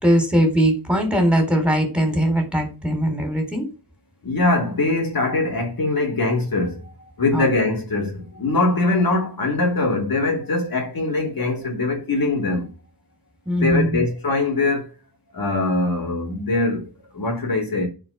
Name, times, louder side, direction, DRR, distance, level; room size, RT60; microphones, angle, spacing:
voice 1, 0.0-3.7 7.3-7.5 13.5-14.0, equal, 5° right, 4.1 m, -20 dB
voice 2, 4.2-12.7 13.6-14.9 15.3-17.9, left 2 dB, 60° left, 3.1 m, -22 dB
10.0 x 5.0 x 5.8 m
cardioid pair, 60°, 40 cm